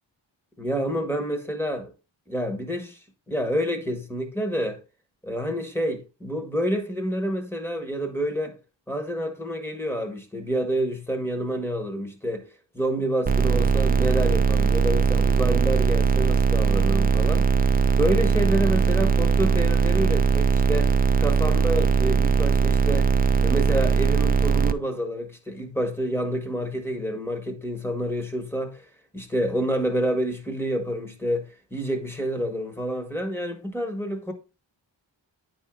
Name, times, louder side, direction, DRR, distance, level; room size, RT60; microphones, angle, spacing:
voice 1, 0.6-1.9 2.3-3.0 3.3-4.8 5.2-8.6 8.9-12.5 12.7-17.5 18.0-20.9 21.2-23.1 23.4-28.8 29.1-34.3, equal, 5° left, 1.5 m, -28 dB
sound 1, 13.3-24.7, right 5 dB, 20° right, 0.4 m, -20 dB
9.7 x 4.6 x 3.8 m
wide cardioid pair, 100°, 44 cm